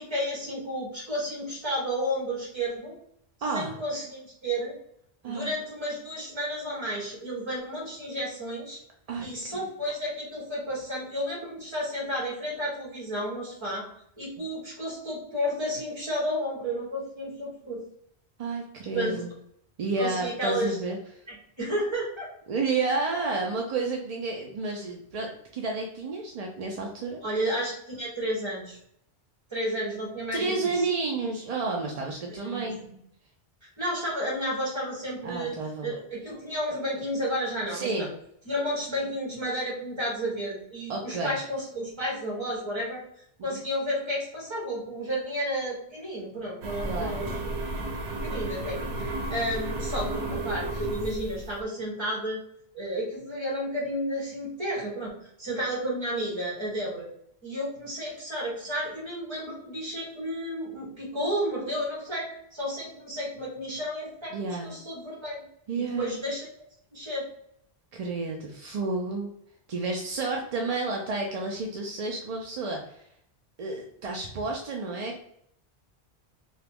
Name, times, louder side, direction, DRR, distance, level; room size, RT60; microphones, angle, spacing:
voice 1, 0.0-2.9 3.5-4.8 5.2-8.8 9.2-13.9 14.2-17.8 18.9-19.2 20.0-20.8 21.3-22.3 27.2-28.8 29.5-30.9 32.3-33.0 33.8-35.6 35.8-38.1 38.4-43.0 43.4-47.5 48.2-52.4 52.7-55.1 55.4-57.1 57.4-65.4 65.7-66.5 66.9-67.2, equal, 30° right, -4 dB, 1.2 m, -32 dB
voice 2, 3.4-3.7 5.2-5.5 9.1-9.6 18.4-19.3 19.8-21.0 22.5-27.2 30.3-32.8 35.2-35.9 37.7-38.1 40.9-41.3 43.4-43.6 46.8-47.2 64.3-64.7 65.7-66.2 67.9-69.3 69.7-73.1 73.6-75.2, right 3 dB, 55° right, 0 dB, 0.4 m, -31 dB
sound 1, 46.6-51.6, right 2 dB, 80° right, 0.9 m, -33 dB
2.9 x 2.3 x 3.4 m, 0.71 s
omnidirectional pair, 1.1 m